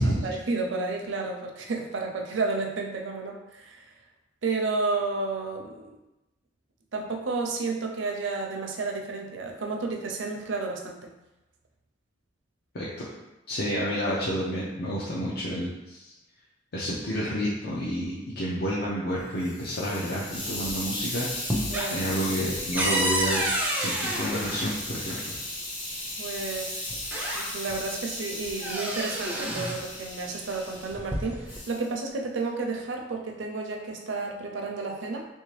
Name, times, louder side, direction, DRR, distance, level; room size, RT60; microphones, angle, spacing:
voice 1, 0.0-3.8 4.4-6.0 6.9-11.1 21.7-22.0 26.2-26.9 27.3-35.3, right 3 dB, 80° right, 1 dB, 0.5 m, -31 dB
voice 2, 12.7-13.1 13.5-16.1 16.7-21.3 21.9-23.4 23.8-25.2, equal, 60° left, -6 dB, 0.6 m, -29 dB
Hiss, 19.2-30.9 31.5-31.9, left 1 dB, 30° left, 0.9 m, -36 dB
sound 1, 20.3-21.0 21.3-25.3 26.4-26.5 26.9-27.8 28.2-29.9 30.8-31.6, right 1 dB, 10° right, 0.4 m, -30 dB
3.2 x 2.7 x 3.2 m, 0.98 s
head